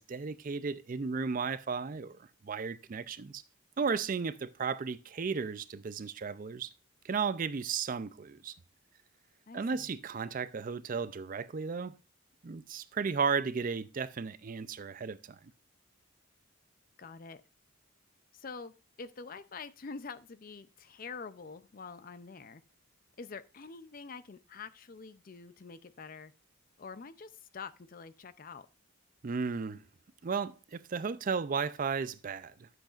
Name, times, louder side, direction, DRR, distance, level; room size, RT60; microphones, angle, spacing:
voice 1, 0.0-3.4 3.8-6.7 7.0-8.5 9.5-11.9 12.4-15.4 29.2-29.8 30.2-32.7, right 5 dB, 40° right, 0.4 m, -34 dB
voice 2, 9.5-9.9 17.0-17.4 18.3-18.7 19.0-22.6 23.2-26.3 26.8-28.7, left 4 dB, 40° left, 0.5 m, -46 dB
11.5 x 7.8 x 2.4 m
head